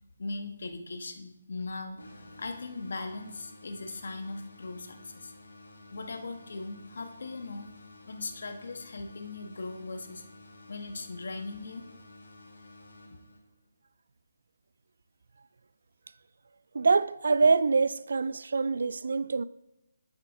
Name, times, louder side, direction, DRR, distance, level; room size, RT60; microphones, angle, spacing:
voice 1, 0.2-2.0 2.4-5.3 5.9-7.7 8.1-10.2 10.7-11.8, left 3 dB, 65° left, 1.3 m, -39 dB
sound 1, 2.0-13.7, left 2 dB, 85° left, 3.3 m, -52 dB
voice 2, 16.7-19.4, right 4 dB, 70° right, 0.4 m, -25 dB
10.0 x 8.0 x 3.8 m
figure-of-eight pair, 150°, 0 cm